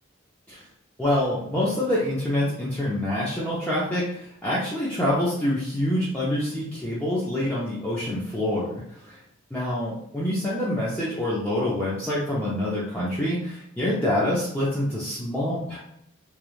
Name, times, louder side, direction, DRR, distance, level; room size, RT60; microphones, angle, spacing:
voice 1, 1.0-9.2 9.5-15.8, left 1 dB, 10° left, -9 dB, 0.5 m, -26 dB
3.1 x 2.3 x 2.4 m, 0.75 s
head